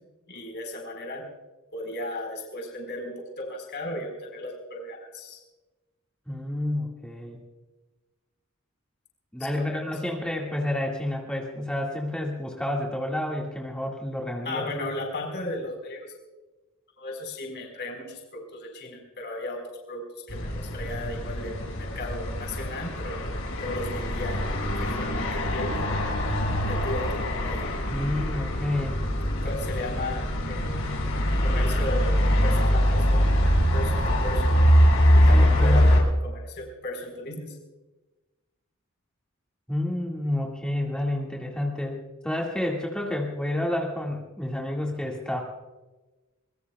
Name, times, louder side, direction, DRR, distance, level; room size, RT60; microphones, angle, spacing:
voice 1, 0.3-1.2 1.7-5.4 9.4-9.8 14.4-16.1 17.0-23.2 23.6-26.0 26.7-27.7 29.4-30.8 31.4-33.3 33.7-34.5 35.1-37.6, left 1 dB, 55° left, 2 dB, 4.5 m, -35 dB
voice 2, 6.3-7.4 9.3-14.7 27.9-29.0 35.3-35.8 39.7-45.4, left 1 dB, 5° left, -2 dB, 1.9 m, -29 dB
sound 1, 20.3-36.0, equal, 75° left, 5.9 m, -23 dB
24.5 x 22.5 x 2.3 m, 1.1 s
head